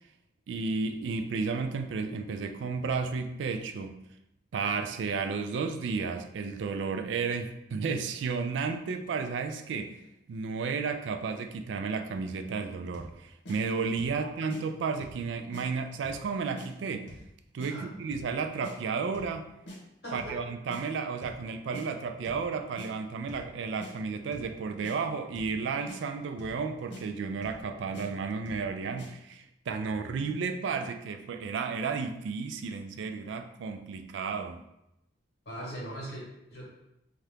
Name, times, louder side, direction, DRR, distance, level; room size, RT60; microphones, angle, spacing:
voice 1, 0.5-3.9 4.5-10.0 10.3-17.1 17.5-19.5 20.1-34.6, right 5 dB, 80° right, 6 dB, 0.3 m, -33 dB
sound 1, 12.9-13.2 13.5-13.6 14.0-14.2 14.5-14.6 15.0-15.2 15.5-15.7 16.0-16.3 16.6-16.7 17.1-17.3 17.6-17.7 18.1-18.3 18.6-18.8 19.1-19.4 19.7-19.8 20.2-20.4 20.7-20.8 21.2-21.4 21.7-21.9 22.2-22.5 22.8-22.9 23.3-23.5 23.8-23.9 24.3-24.5 24.8-25.0 25.4-25.6 25.9-26.0 26.4-26.6 26.9-27.0 27.4-27.6 27.9-28.1 28.5-28.7 29.0-29.1, left 1 dB, 85° left, 0.8 m, -44 dB
voice 2, 20.0-20.4 35.4-36.7, right 1 dB, 55° left, -5 dB, 1.3 m, -40 dB
2.8 x 2.4 x 3.3 m, 0.85 s
head